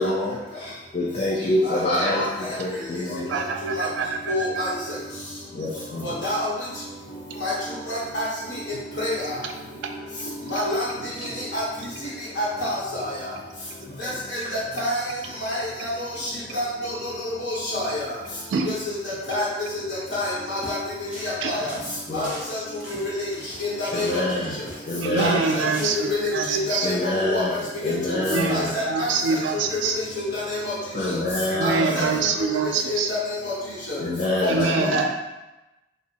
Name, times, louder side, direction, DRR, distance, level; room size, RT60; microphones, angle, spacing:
voice 1, 0.0-3.4 5.5-6.2 22.1-22.4 23.9-25.4 26.8-27.5 27.8-28.7 30.9-32.4 34.0-35.1, left 1 dB, 35° left, -5 dB, 0.3 m, -26 dB
voice 2, 3.3-4.7 9.6-9.9 10.2-10.3 11.0-11.3 18.5-18.7 21.4-21.5 25.0-26.9 28.2-30.0 31.5-33.1 34.5-35.1, right 5 dB, 80° right, 4 dB, 0.3 m, -26 dB
voice 3, 4.3-4.7 6.0-6.5 7.4-7.5 7.9-8.2 9.0-9.1 10.5-10.8 11.5-11.6 12.4-13.1 14.8-15.0 15.4-15.9 16.5-16.6 17.2-17.9 18.7-18.8 19.3-19.5 20.1-20.8 21.2-21.6 22.1-22.6 22.9-23.3 23.6-24.1 25.2-25.6 26.5-27.0 27.2-27.4 27.9-28.0 28.5-29.1 30.3-30.6 31.6-32.0 32.9-33.2 33.4-33.5 34.9-35.0, left 1 dB, 70° left, -8 dB, 0.9 m, -27 dB
sound 1, 20.5-20.8 21.1-21.4 21.7-24.9 25.1-25.4 25.7-26.0, right 1 dB, 5° right, 0.6 m, -40 dB
2.7 x 2.1 x 2.7 m, 1.0 s
head